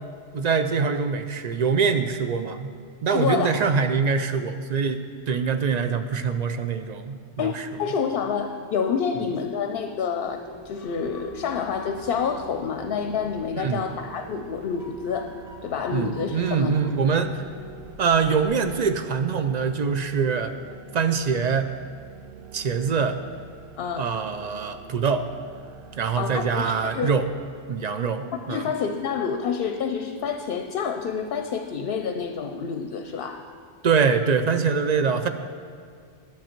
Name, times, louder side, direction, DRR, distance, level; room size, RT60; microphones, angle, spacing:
voice 1, 0.3-2.7 3.0-7.7 13.5-13.8 15.9-17.4 18.0-20.5 20.9-21.7 22.5-23.2 24.0-25.2 26.0-27.3 27.7-28.6 33.8-35.3, right 5 dB, 55° right, 9 dB, 0.5 m, -24 dB
voice 2, 3.1-3.6 7.4-16.9 23.8-24.1 26.2-27.1 28.3-33.5, left 6 dB, 65° left, 7 dB, 0.7 m, -28 dB
sound 1, 10.3-18.8, left 2 dB, 20° left, 0.7 m, -45 dB
sound 2, 11.0-27.5, right 9 dB, 75° right, 0.8 m, -47 dB
11.5 x 7.2 x 4.4 m, 2.2 s
omnidirectional pair, 1.1 m